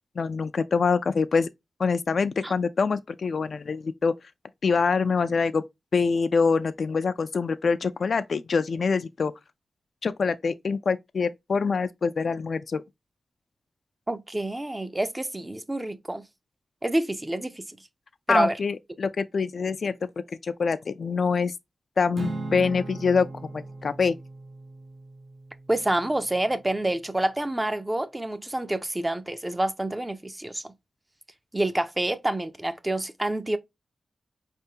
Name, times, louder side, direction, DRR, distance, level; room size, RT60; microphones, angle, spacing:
voice 1, 0.2-1.5 1.8-4.1 4.6-5.6 5.9-9.3 10.0-12.8 18.3-20.0 20.4-21.5 22.0-23.3 23.5-24.2, left 5 dB, 60° left, 0.3 m, -25 dB
voice 2, 14.1-16.2 16.8-17.6 18.3-18.6 25.7-30.7 31.5-33.6, right 1 dB, 15° right, 0.5 m, -27 dB
Acoustic guitar / Strum, 22.2-26.6, right 2 dB, 55° right, 0.6 m, -39 dB
4.7 x 3.4 x 2.7 m
wide cardioid pair, 125°, 0 cm